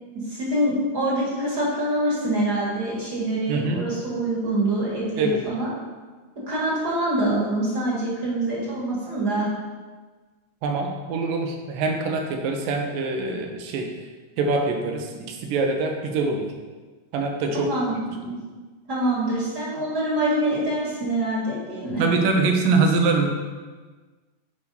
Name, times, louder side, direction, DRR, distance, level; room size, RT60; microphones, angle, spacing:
voice 1, 0.3-5.7 6.5-9.5 17.5-18.4 18.9-22.0, right 1 dB, 35° right, -6 dB, 2.0 m, -25 dB
voice 2, 3.5-3.8 5.2-5.4 10.6-13.9 14.4-16.5 17.1-17.7 22.0-23.3, right 3 dB, 75° right, 3 dB, 2.5 m, -24 dB
7.1 x 5.0 x 5.4 m, 1.4 s
omnidirectional pair, 4.2 m